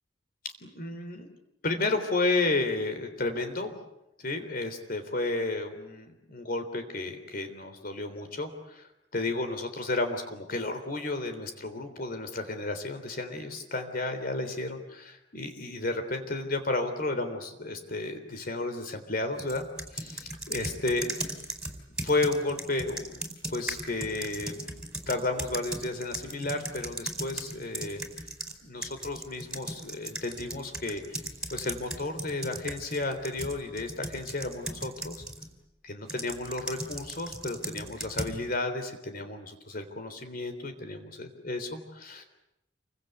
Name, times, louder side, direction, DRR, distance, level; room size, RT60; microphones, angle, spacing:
voice 1, 0.6-1.3 1.6-3.7 4.2-19.7 19.9-21.3 22.0-28.0 28.6-31.2 31.5-35.2 35.8-42.2, left 2 dB, 50° left, 7 dB, 3.6 m, -32 dB
sound 1, 19.4-28.5 28.8-35.5 36.1-38.4, right 1 dB, 5° right, 4.5 m, -38 dB
28.5 x 24.0 x 8.2 m, 0.84 s
head